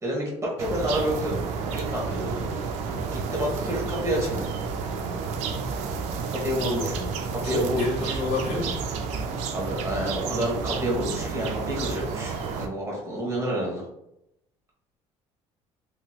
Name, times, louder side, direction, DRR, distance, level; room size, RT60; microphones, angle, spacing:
voice 1, 0.0-1.4 1.7-2.4 3.1-4.5 6.3-7.0 7.4-7.9 9.5-13.8, equal, 25° right, -3 dB, 1.2 m, -29 dB
sound 1, 0.6-12.7, right 5 dB, 75° right, 0.4 m, -31 dB
voice 2, 6.6-7.1 7.4-8.8 13.3-13.5, left 2 dB, 70° left, -3 dB, 0.9 m, -30 dB
2.9 x 2.9 x 2.3 m, 0.82 s
cardioid pair, 120°, 12 cm